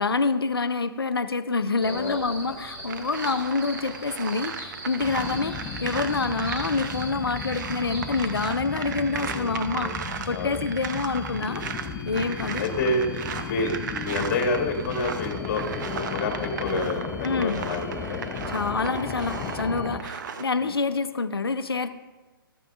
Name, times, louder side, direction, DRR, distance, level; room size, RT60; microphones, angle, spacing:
voice 1, 0.0-5.5 5.8-11.6 12.1-12.7 17.2-17.6 18.5-21.9, left 4 dB, 85° left, 10 dB, 0.5 m, -27 dB
voice 2, 1.8-2.3 5.2-5.4 9.1-9.9 10.3-10.6 12.3-13.1 13.4-18.2 18.7-18.9 20.6-20.7, left 2 dB, 40° left, 2 dB, 1.6 m, -29 dB
sound 1, 1.8-8.5, right 1 dB, 25° right, 2.5 m, -41 dB
sound 2, 2.9-20.4, right 7 dB, 55° right, 0.8 m, -36 dB
sound 3, 5.0-20.0, left 6 dB, 20° left, 0.7 m, -35 dB
13.5 x 9.0 x 2.5 m, 1.2 s
figure-of-eight pair, 130°, 12 cm